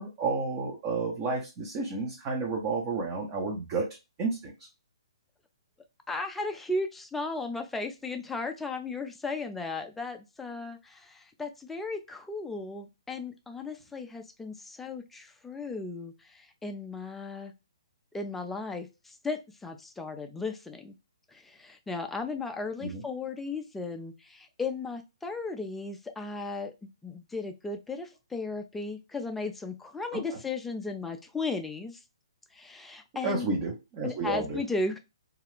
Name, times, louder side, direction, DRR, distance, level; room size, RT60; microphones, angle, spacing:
voice 1, 0.0-4.5 22.8-23.0 30.1-30.2 33.2-34.6, right 3 dB, 30° right, -1 dB, 0.7 m, -31 dB
voice 2, 6.1-17.5 18.1-20.9 21.3-26.7 27.0-32.0 32.5-33.5 34.0-35.0, left 3 dB, 5° left, 5 dB, 0.4 m, -35 dB
2.4 x 2.3 x 3.4 m, 0.25 s
figure-of-eight pair, 130°, 3 cm